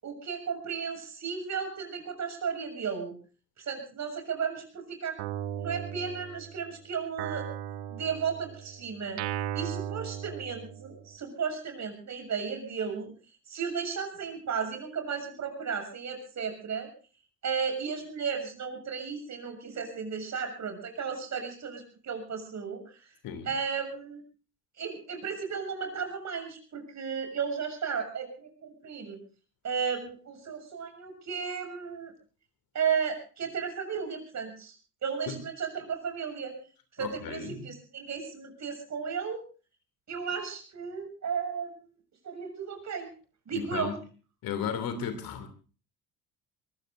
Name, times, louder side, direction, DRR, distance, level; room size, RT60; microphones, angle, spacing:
voice 1, 0.0-3.1 3.6-5.2 5.5-7.5 7.9-13.1 13.5-16.9 17.4-23.1 23.5-24.2 24.8-29.2 29.6-32.1 32.7-34.7 35.0-36.6 37.0-39.4 40.1-41.8 42.2-43.1 43.5-43.9, right 6 dB, 35° right, 5 dB, 7.0 m, -34 dB
Guitar, 5.2-6.7 7.2-11.1, right 10 dB, 55° right, 1.7 m, -37 dB
voice 2, 37.0-37.7 43.5-43.9 44.4-45.5, left 7 dB, 50° left, 9 dB, 3.0 m, -34 dB
24.0 x 22.0 x 2.6 m, 0.38 s
figure-of-eight pair, 60°, 46 cm